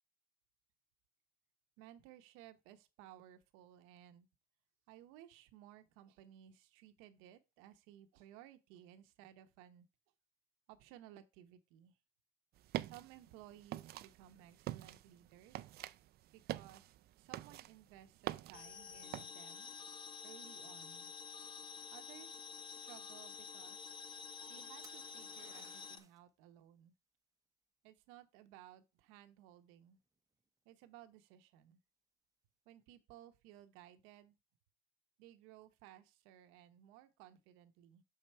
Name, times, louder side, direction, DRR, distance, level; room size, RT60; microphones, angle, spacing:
voice 1, 1.8-4.3 4.9-9.9 10.7-12.0 12.8-15.8 16.3-19.7 20.2-21.1 21.9-24.0 24.5-26.9 27.8-30.0 30.6-31.8 32.7-34.4 35.2-38.0, right 12 dB, 85° right, 0.9 m, -59 dB
sound 1, 12.6-19.3, right 14 dB, 50° right, 0.4 m, -46 dB
sound 2, 18.5-26.0, left 5 dB, 25° left, 0.6 m, -50 dB
sound 3, 24.8-26.3 30.0-30.4, right 4 dB, 15° right, 0.8 m, -63 dB
6.5 x 4.7 x 4.3 m
cardioid pair, 115°, 21 cm